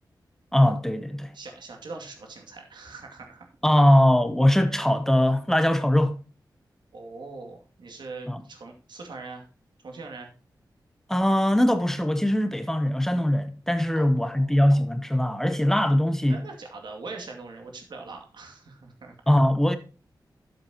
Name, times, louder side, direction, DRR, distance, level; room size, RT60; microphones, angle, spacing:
voice 1, 0.5-1.3 3.6-6.2 8.3-8.4 11.1-16.4 19.3-19.8, left 1 dB, 5° left, 0.8 m, -21 dB
voice 2, 1.3-3.5 6.9-9.5 9.8-10.3 13.9-14.5 16.3-19.2, right 3 dB, 80° right, 2.3 m, -42 dB
12.5 x 7.7 x 2.9 m
wide cardioid pair, 135°, 8 cm